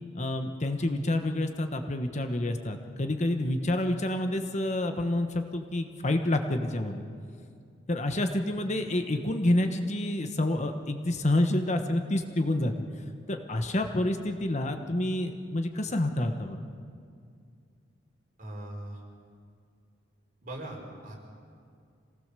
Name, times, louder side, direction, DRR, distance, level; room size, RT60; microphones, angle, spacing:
voice 1, 0.1-7.1 7.9-12.8 13.3-16.6, left 1 dB, 40° left, 6 dB, 1.2 m, -28 dB
voice 2, 18.4-19.0 20.4-21.1, right 1 dB, 45° right, -2 dB, 5.1 m, -40 dB
26.5 x 18.0 x 6.8 m, 2.3 s
head